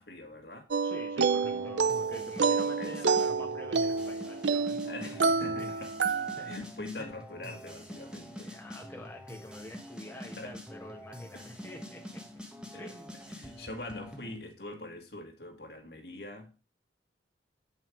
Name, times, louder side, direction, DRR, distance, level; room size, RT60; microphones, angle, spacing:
voice 1, 0.0-0.7 2.8-3.2 4.8-5.9 6.4-8.5 10.4-10.6 11.3-11.4 12.7-12.9 13.3-16.7, left 2 dB, 60° left, 2.0 m, -43 dB
sound 1, 0.7-6.6, right 5 dB, 85° right, 0.6 m, -29 dB
voice 2, 0.8-5.1 5.6-5.7 6.4-6.5 7.0-7.1 8.2-12.2 12.8-13.5, left 1 dB, 10° left, 1.5 m, -47 dB
sound 2, 1.4-14.4, equal, 5° right, 1.4 m, -46 dB
8.4 x 5.6 x 4.6 m
head